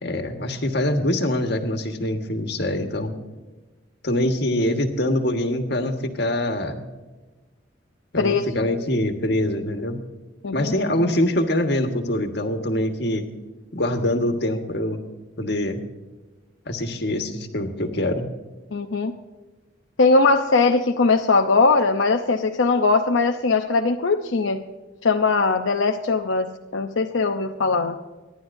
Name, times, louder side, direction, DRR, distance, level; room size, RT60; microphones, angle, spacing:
voice 1, 0.0-3.1 4.0-6.8 8.1-10.0 10.5-13.2 13.7-15.0 15.4-15.8 16.7-18.3, left 1 dB, 60° left, 5 dB, 1.6 m, -24 dB
voice 2, 8.2-8.7 10.4-10.7 18.7-19.1 20.0-24.6 25.0-28.0, left 3 dB, 85° left, 3 dB, 0.7 m, -20 dB
25.5 x 11.0 x 2.7 m, 1.2 s
head